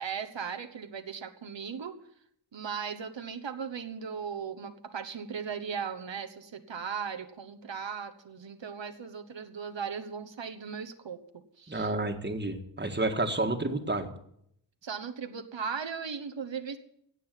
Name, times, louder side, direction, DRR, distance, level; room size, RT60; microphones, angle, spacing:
voice 1, 0.0-2.0 2.5-11.9 14.8-16.8, right 6 dB, 85° right, 7 dB, 1.3 m, -37 dB
voice 2, 11.7-14.1, right 2 dB, 25° right, 6 dB, 1.8 m, -30 dB
17.0 x 7.8 x 9.1 m, 0.71 s
wide cardioid pair, 90°, 43 cm